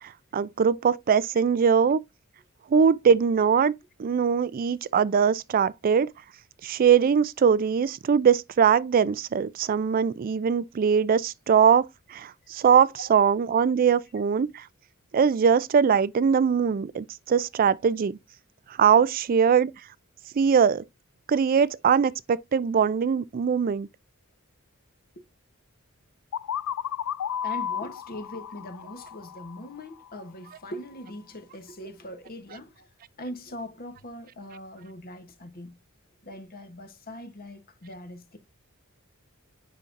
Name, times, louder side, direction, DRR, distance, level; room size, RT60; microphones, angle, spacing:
voice 1, 0.0-2.0 2.7-3.7 4.0-6.1 6.6-14.6 15.1-18.2 18.8-19.7 20.4-20.8 21.3-23.9, right 7 dB, 40° right, 0.3 m, -22 dB
sound 1, 26.3-30.1, left 9 dB, 75° left, 0.4 m, -33 dB
voice 2, 27.4-32.9 33.2-35.7 36.2-38.4, left 1 dB, 45° left, 1.0 m, -41 dB
8.2 x 5.3 x 2.5 m
head